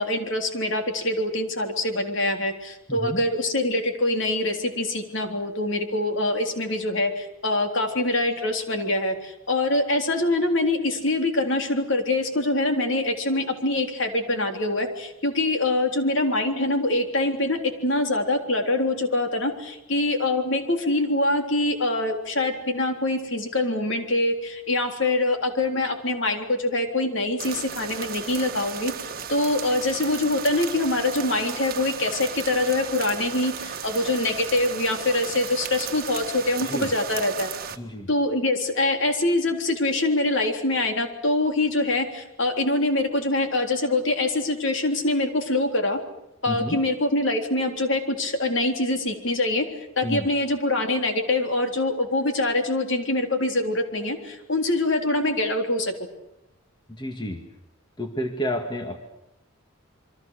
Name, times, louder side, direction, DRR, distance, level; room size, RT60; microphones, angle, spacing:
voice 1, 0.0-28.9 29.3-37.5 38.1-46.0 46.4-49.6 50.0-55.9, left 2 dB, 60° left, 4 dB, 3.6 m, -24 dB
voice 2, 2.9-3.2 36.6-36.9 37.7-38.1 46.5-46.8 50.0-50.3 56.9-57.4 58.0-59.0, equal, 20° left, 5 dB, 2.0 m, -30 dB
sound 1, 27.4-37.8, right 7 dB, 45° right, 1.7 m, -35 dB
27.5 x 23.5 x 6.6 m, 0.88 s
head